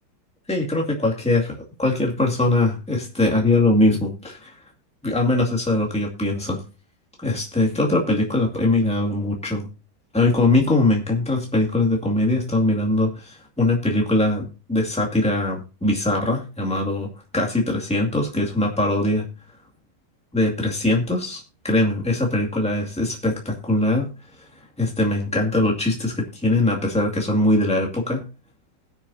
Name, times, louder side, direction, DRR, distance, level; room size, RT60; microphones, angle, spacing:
voice 1, 0.5-4.5 5.0-6.6 7.2-9.7 10.1-17.1 17.3-19.3 20.3-24.1 24.8-28.2, left 2 dB, 5° left, -1 dB, 2.1 m, -21 dB
20.5 x 6.9 x 2.7 m, 0.32 s
omnidirectional pair, 2.2 m